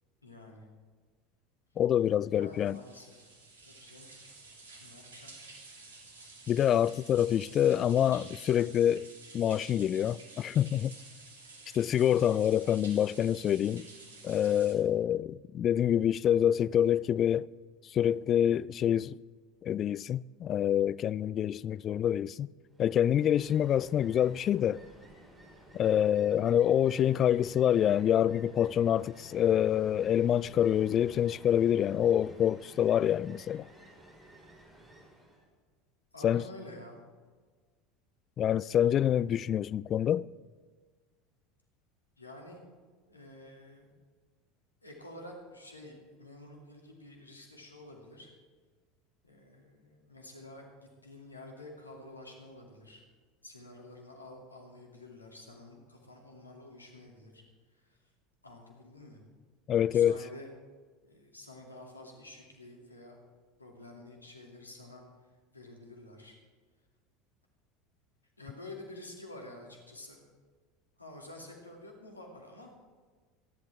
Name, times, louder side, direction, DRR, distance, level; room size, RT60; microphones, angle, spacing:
voice 1, 0.2-0.7 2.3-3.3 3.6-4.1 4.8-5.3 36.1-37.0 42.2-42.6 43.1-44.0 44.8-48.3 49.2-53.0 53.4-57.4 57.7-58.0 58.4-59.2 59.9-60.5 61.0-63.2 63.6-65.0 65.5-66.4 68.4-70.2 71.0-72.7, left 1 dB, 85° left, 2.6 m, -49 dB
voice 2, 1.8-2.8 6.5-9.1 9.3-10.9 11.7-13.9 14.2-17.5 17.9-19.2 19.6-22.5 22.8-24.8 25.7-33.7 36.2-36.4 38.4-40.3 59.7-60.2, left 10 dB, 40° left, 0.3 m, -26 dB
sound 1, 2.5-14.7, right 3 dB, 75° right, 2.4 m, -51 dB
Ocean, 22.7-35.5, right 1 dB, 15° right, 4.8 m, -54 dB
24.5 x 11.0 x 3.6 m
figure-of-eight pair, 75°, 0 cm